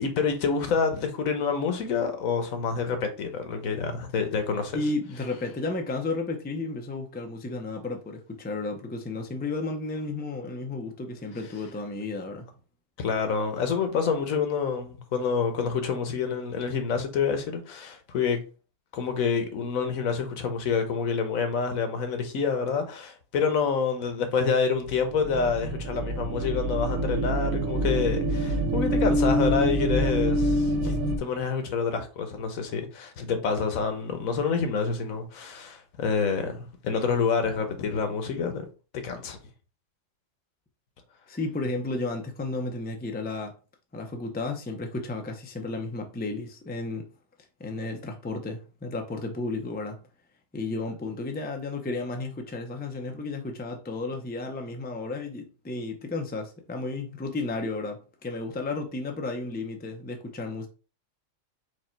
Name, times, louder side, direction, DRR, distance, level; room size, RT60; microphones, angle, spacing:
voice 1, 0.0-4.8 13.0-18.4 18.9-38.7 38.9-39.4, left 5 dB, 85° left, 1.3 m, -27 dB
voice 2, 4.7-12.5 41.3-43.6 43.9-47.1 47.6-50.0 50.5-60.7, left 2 dB, 15° left, 0.4 m, -33 dB
sound 1, 24.8-31.2, right 1 dB, 90° right, 1.2 m, -26 dB
4.9 x 2.4 x 4.4 m
omnidirectional pair, 1.4 m